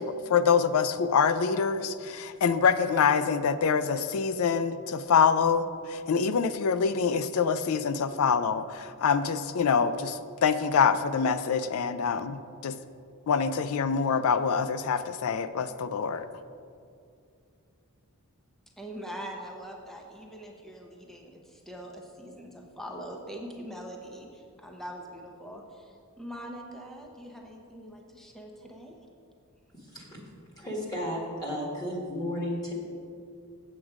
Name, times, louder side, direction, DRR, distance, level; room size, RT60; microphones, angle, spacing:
voice 1, 0.0-12.8 13.3-16.3, left 6 dB, 70° left, 12 dB, 0.4 m, -25 dB
voice 2, 18.8-29.0, equal, ahead, 0 dB, 0.8 m, -43 dB
voice 3, 29.7-30.2 30.6-32.7, equal, 15° left, -3 dB, 1.6 m, -33 dB
7.9 x 7.5 x 4.9 m, 2.4 s
head